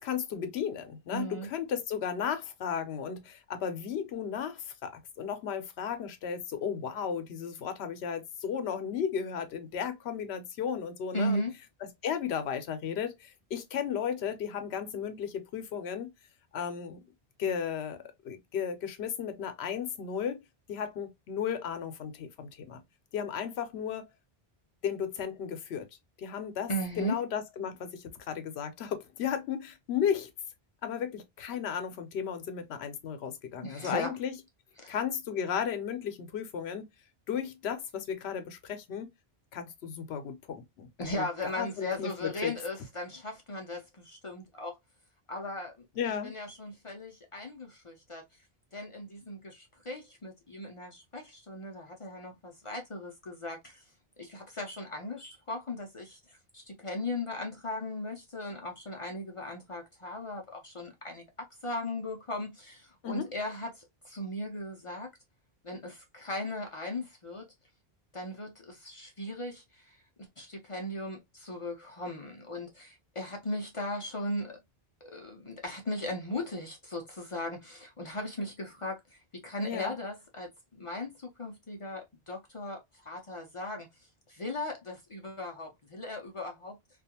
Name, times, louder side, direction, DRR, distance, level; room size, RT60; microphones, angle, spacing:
voice 1, 0.0-4.9 5.2-11.4 12.0-16.1 16.5-17.0 17.4-18.0 18.2-20.4 20.7-22.8 23.1-24.1 24.8-25.8 26.2-26.7 27.0-30.3 30.8-34.3 34.9-36.9 37.3-39.1 39.5-42.5 46.0-46.3 63.0-63.3 79.6-79.9, left 8 dB, 80° left, 0.9 m, -34 dB
voice 2, 1.1-1.5 11.1-11.5 26.7-27.2 33.6-34.1 34.8-35.0 41.0-44.8 45.3-45.9 46.2-48.4 48.7-53.8 54.2-65.1 65.6-67.5 68.1-74.6 75.0-86.8, left 1 dB, 45° left, 0.4 m, -38 dB
2.5 x 2.3 x 2.7 m
omnidirectional pair, 1.1 m